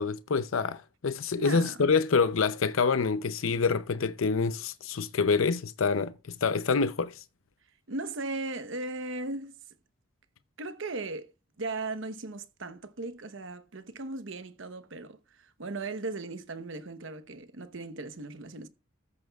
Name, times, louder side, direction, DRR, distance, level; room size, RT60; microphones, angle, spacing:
voice 1, 0.0-7.2, left 5 dB, 90° left, 0.6 m, -27 dB
voice 2, 1.3-1.8 7.9-9.5 10.6-11.3 11.6-18.7, right 2 dB, 70° right, 1.0 m, -37 dB
13.5 x 9.6 x 2.4 m
head